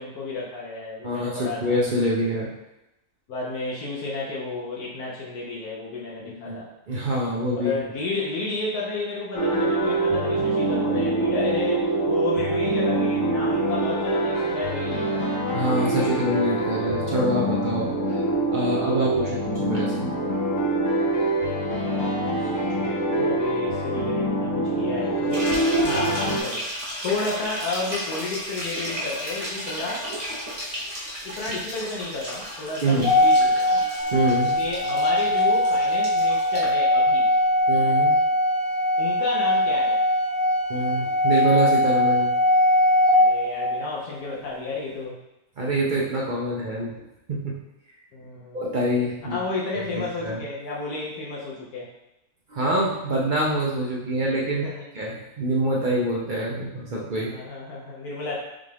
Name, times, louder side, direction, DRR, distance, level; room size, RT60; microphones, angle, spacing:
voice 1, 0.0-1.7 3.3-6.7 7.6-15.6 18.2-18.3 18.7-19.3 21.1-25.5 25.8-26.7 27.0-30.0 31.2-33.8 34.6-37.3 39.0-40.0 43.1-45.2 48.1-48.6 49.3-51.9 54.6-54.8 57.2-58.4, left 3 dB, 75° left, -5 dB, 1.3 m, -32 dB
voice 2, 1.0-2.5 6.2-6.6 6.9-7.8 15.5-20.1 32.8-33.1 34.0-34.6 37.7-38.2 40.7-42.3 45.6-47.6 48.5-49.4 49.9-50.4 52.5-54.6 54.9-57.3, right 1 dB, 55° right, -4 dB, 0.5 m, -25 dB
sound 1, 9.3-26.4, right 2 dB, 60° left, 1.1 m, -24 dB
sound 2, 25.3-36.7, equal, 30° right, 0.8 m, -34 dB
Organ, 33.0-43.9, left 1 dB, 25° left, 0.5 m, -21 dB
5.5 x 2.4 x 3.4 m, 0.93 s
omnidirectional pair, 1.6 m